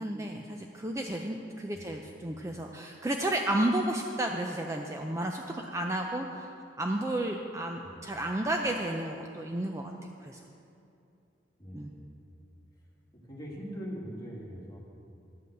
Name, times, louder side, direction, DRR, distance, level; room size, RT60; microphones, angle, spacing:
voice 1, 0.0-6.5 6.8-9.9 10.2-10.4 11.7-11.9, right 1 dB, 15° right, 2 dB, 0.4 m, -32 dB
voice 2, 11.6-12.1 13.1-14.8, equal, 20° left, -4 dB, 1.8 m, -42 dB
11.0 x 5.4 x 7.7 m, 2.7 s
head